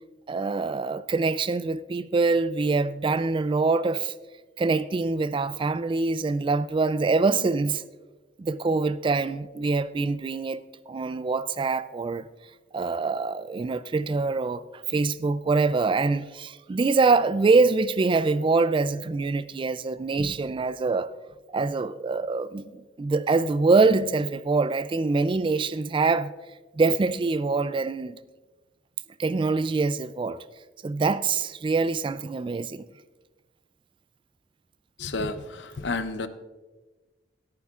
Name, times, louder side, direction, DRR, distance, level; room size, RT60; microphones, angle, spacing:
voice 1, 0.3-4.1 4.6-7.8 8.4-12.3 12.7-14.6 14.9-21.1 21.5-22.7 23.0-26.3 26.8-28.2 29.2-30.4 30.8-32.9, right 3 dB, 30° right, 0.3 m, -24 dB
voice 2, 35.0-36.3, left 3 dB, 70° left, 0.7 m, -31 dB
14.0 x 14.0 x 2.4 m
head